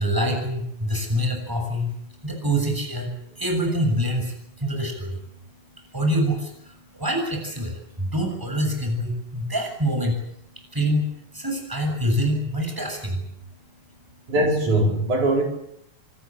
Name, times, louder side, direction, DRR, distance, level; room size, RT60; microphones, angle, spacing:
voice 1, 0.0-13.3, equal, 5° right, 4 dB, 7.2 m, -26 dB
voice 2, 14.3-15.4, right 1 dB, 75° right, 1 dB, 6.5 m, -21 dB
26.5 x 19.5 x 8.9 m, 0.73 s
omnidirectional pair, 3.5 m